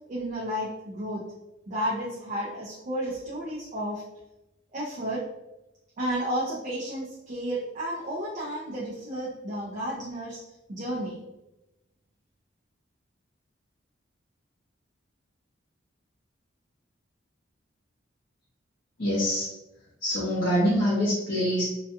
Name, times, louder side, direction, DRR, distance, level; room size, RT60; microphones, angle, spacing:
voice 1, 0.1-1.2 1.7-4.0 4.7-5.2 6.0-10.4 10.7-11.2, equal, 40° right, -6 dB, 0.5 m, -32 dB
voice 2, 19.0-19.5 20.0-21.6, equal, 55° left, -7 dB, 0.7 m, -25 dB
2.3 x 2.2 x 2.8 m, 0.96 s
head